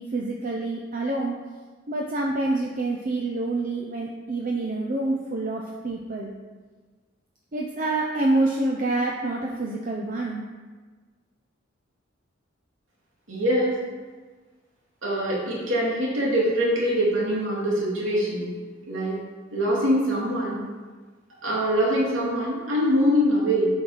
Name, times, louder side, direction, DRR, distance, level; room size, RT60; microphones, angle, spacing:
voice 1, 0.0-1.4 1.9-6.3 7.5-10.5, right 2 dB, 45° right, -1 dB, 0.7 m, -27 dB
voice 2, 13.3-13.8 15.0-18.5 18.9-19.1 19.5-20.6 21.4-23.7, equal, 90° right, -5 dB, 2.7 m, -23 dB
8.2 x 4.6 x 5.7 m, 1.4 s
head